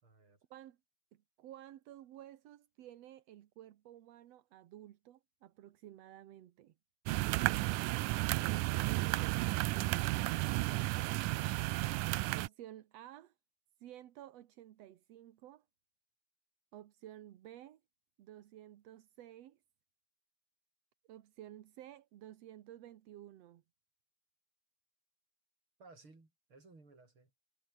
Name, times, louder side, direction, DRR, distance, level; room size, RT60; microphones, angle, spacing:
voice 1, 0.0-0.4 25.8-27.5, right 3 dB, 40° right, 6.8 m, -60 dB
voice 2, 1.1-6.7 8.3-10.4 12.3-13.3 13.8-15.6 16.7-17.8 18.2-19.6 21.1-23.6, right 12 dB, 65° right, 2.0 m, -53 dB
sound 1, 7.1-12.5, right 19 dB, 90° right, 2.2 m, -33 dB
omnidirectional pair, 3.5 m